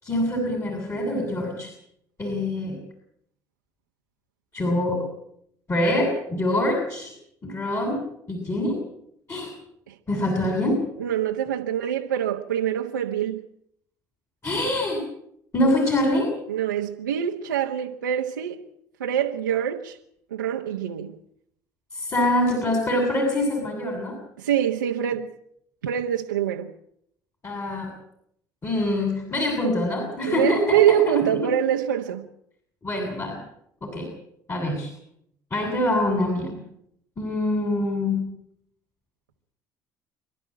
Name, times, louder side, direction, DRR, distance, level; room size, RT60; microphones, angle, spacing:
voice 1, 0.0-1.7 2.2-2.8 4.5-5.0 5.7-7.1 7.4-8.0 8.3-8.8 9.3-9.5 10.1-10.8 14.4-15.0 15.5-16.3 21.9-24.2 27.4-27.9 28.6-31.2 32.8-33.4 33.8-34.1 34.5-34.9 35.5-36.6 37.2-38.2, left 1 dB, 30° left, 7.6 m, -24 dB
voice 2, 11.0-13.4 16.5-18.6 19.0-20.0 20.3-21.1 24.4-25.3 25.8-26.7 30.2-32.2, right 10 dB, 90° right, 1.2 m, -25 dB
27.5 x 12.5 x 9.0 m
hypercardioid pair, 60°, 10 cm